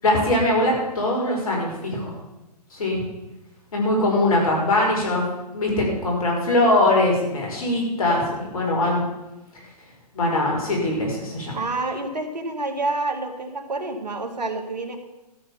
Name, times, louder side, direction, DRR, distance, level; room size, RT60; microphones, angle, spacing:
voice 1, 0.0-2.1 2.7-3.0 3.7-5.3 5.5-9.0 10.1-11.6, left 1 dB, 60° left, -1 dB, 5.3 m, -21 dB
voice 2, 11.5-15.0, right 2 dB, 85° right, 5 dB, 2.0 m, -28 dB
13.0 x 7.0 x 7.2 m, 0.99 s
figure-of-eight pair, 135°, 21 cm